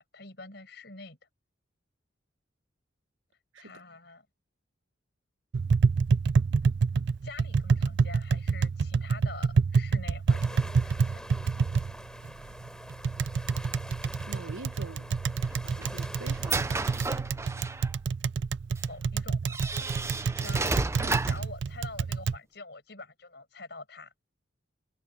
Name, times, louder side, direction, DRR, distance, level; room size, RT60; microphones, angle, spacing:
voice 1, 0.1-1.2 3.6-4.3 7.2-11.2 18.8-20.1 20.4-24.1, left 3 dB, 55° left, 6.0 m, -46 dB
Tap, 5.5-22.4, right 5 dB, 60° right, 0.4 m, -28 dB
sound 1, 10.3-17.1, equal, 5° left, 3.6 m, -45 dB
voice 2, 14.3-15.1 15.6-17.3, right 3 dB, 90° right, 1.2 m, -45 dB
sound 2, 15.4-17.9 18.8-18.9 19.5-21.5, right 3 dB, 15° right, 0.6 m, -32 dB
head